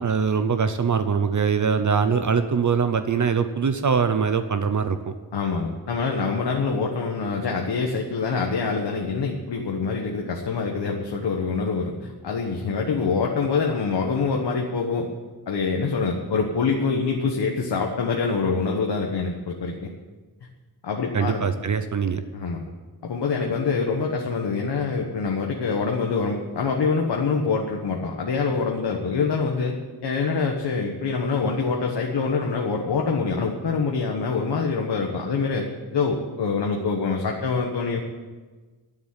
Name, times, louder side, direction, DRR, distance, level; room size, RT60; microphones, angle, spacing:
voice 1, 0.0-5.1 21.1-22.2, right 6 dB, 45° right, 9 dB, 0.7 m, -22 dB
voice 2, 5.3-15.1 15.5-19.9 20.8-21.4 22.3-22.6 23.0-29.7 30.0-35.7 35.9-38.0, left 4 dB, 75° left, 1 dB, 1.4 m, -25 dB
12.0 x 7.3 x 9.6 m, 1.3 s
wide cardioid pair, 145°, 41 cm